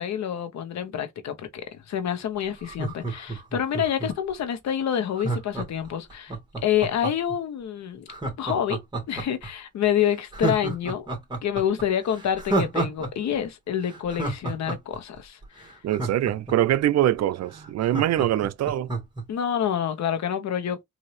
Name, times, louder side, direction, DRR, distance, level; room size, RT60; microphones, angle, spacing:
voice 1, 0.0-6.4 6.6-8.1 8.4-8.8 9.1-11.1 11.4-15.7 19.3-20.8, left 9 dB, 65° left, 1.1 m, -27 dB
Laughter, 2.6-4.3 5.2-7.4 8.1-9.5 9.9-10.0 10.3-13.1 13.4-13.5 13.8-16.8 17.2-17.3 17.5-19.2 19.6-19.7, right 2 dB, 15° right, 2.0 m, -30 dB
voice 2, 15.8-18.9, right 12 dB, 60° right, 0.5 m, -23 dB
4.1 x 2.7 x 3.2 m
cardioid pair, 90°, 30 cm